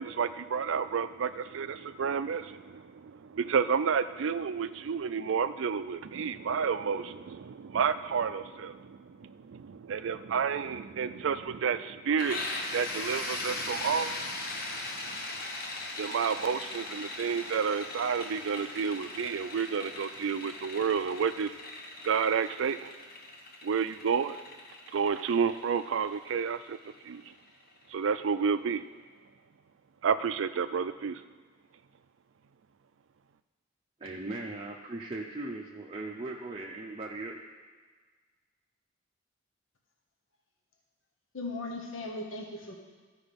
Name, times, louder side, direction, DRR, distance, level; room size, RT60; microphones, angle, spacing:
voice 1, 0.0-15.2 16.0-21.5 22.0-22.9 23.6-24.4 24.9-26.8 27.0-27.3 27.9-28.8 30.0-31.2, right 6 dB, 65° right, 12 dB, 0.4 m, -30 dB
sound 1, 12.2-27.8, left 2 dB, 45° left, 1.1 m, -39 dB
voice 2, 34.0-37.4, right 2 dB, 25° right, -2 dB, 0.6 m, -38 dB
voice 3, 41.3-42.7, left 2 dB, 70° left, 1 dB, 1.2 m, -37 dB
14.0 x 5.0 x 5.2 m, 1.4 s
head